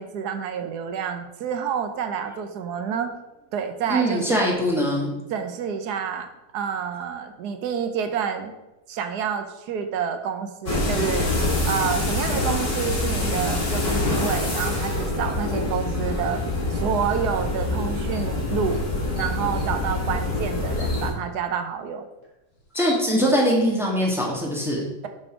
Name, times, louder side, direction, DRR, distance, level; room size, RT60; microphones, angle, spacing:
voice 1, 0.0-3.1 3.5-4.4 5.3-6.3 6.5-8.5 8.9-11.3 11.6-16.4 16.7-18.8 19.1-22.0, right 7 dB, 70° right, 7 dB, 1.2 m, -28 dB
voice 2, 3.9-5.2 22.7-24.9, equal, ahead, -3 dB, 1.5 m, -22 dB
sound 1, 10.7-21.1, left 2 dB, 75° left, 3.1 m, -25 dB
sound 2, 18.1-18.3 18.7-18.8 19.2-19.7 20.7-21.1 22.2-22.3 22.5-23.5, left 3 dB, 55° left, 2.0 m, -39 dB
7.3 x 4.3 x 4.9 m, 0.99 s
omnidirectional pair, 1.9 m